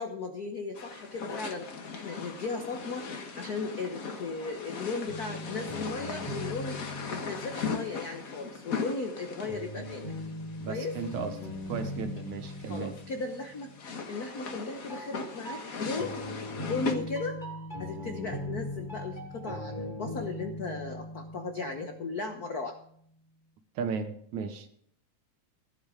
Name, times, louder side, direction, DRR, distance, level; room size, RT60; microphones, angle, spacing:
voice 1, 0.0-3.1 3.4-6.8 7.1-10.1 10.7-11.0 12.6-13.7 14.1-16.1 16.6-17.4 17.8-22.8, left 3 dB, 70° left, 4 dB, 0.9 m, -36 dB
sound 1, 0.8-17.0, left 4 dB, 45° left, 1.2 m, -39 dB
sound 2, 5.1-8.2 9.5-14.1 14.9-22.6, left 1 dB, 15° left, 2.9 m, -40 dB
voice 2, 10.6-11.4 11.7-13.0 23.8-24.7, right 6 dB, 80° right, 7 dB, 2.7 m, -35 dB
15.0 x 9.7 x 5.0 m, 0.64 s
omnidirectional pair, 3.4 m